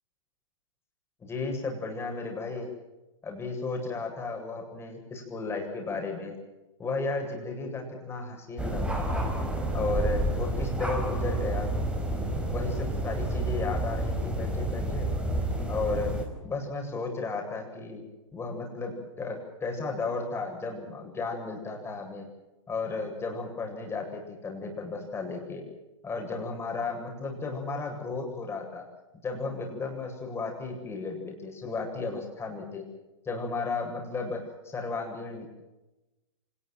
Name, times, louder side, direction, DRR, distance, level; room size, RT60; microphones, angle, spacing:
voice 1, 1.2-2.7 3.2-6.3 6.8-9.3 9.7-11.7 12.5-15.1 15.7-16.1 16.4-18.0 18.3-22.2 22.7-25.6 26.0-28.8 29.2-32.8 33.2-35.5, left 3 dB, 15° left, 2 dB, 8.0 m, -34 dB
sound 1, 8.6-16.3, right 1 dB, 5° right, 4.8 m, -29 dB
26.0 x 20.5 x 7.7 m, 1.0 s
hypercardioid pair, 125°, 17 cm